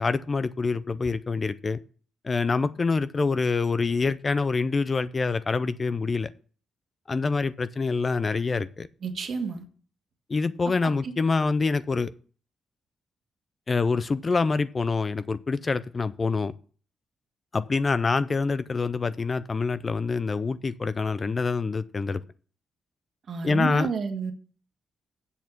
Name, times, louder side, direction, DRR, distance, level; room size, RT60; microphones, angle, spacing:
voice 1, 0.0-1.8 2.2-6.3 7.1-8.9 10.3-12.1 13.7-16.5 17.5-22.2 23.4-23.9, left 4 dB, 25° left, 0.4 m, -26 dB
voice 2, 9.0-9.6 10.8-11.1 23.3-24.3, right 5 dB, 45° right, 1.5 m, -31 dB
8.2 x 7.0 x 5.9 m
cardioid pair, 160°, 0 cm